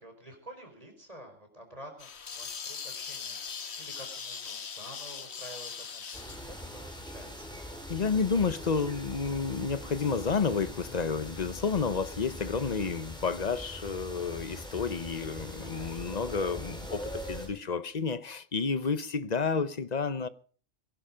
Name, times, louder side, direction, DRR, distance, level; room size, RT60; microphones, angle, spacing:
voice 1, 0.0-7.6 15.6-16.5, right 1 dB, 30° right, 5.1 m, -50 dB
sound 1, 2.0-7.8, left 6 dB, 60° left, 1.4 m, -41 dB
sound 2, 6.1-17.5, equal, 5° left, 4.6 m, -42 dB
voice 2, 7.9-20.3, left 5 dB, 40° left, 0.8 m, -30 dB
23.0 x 11.0 x 5.1 m
omnidirectional pair, 1.3 m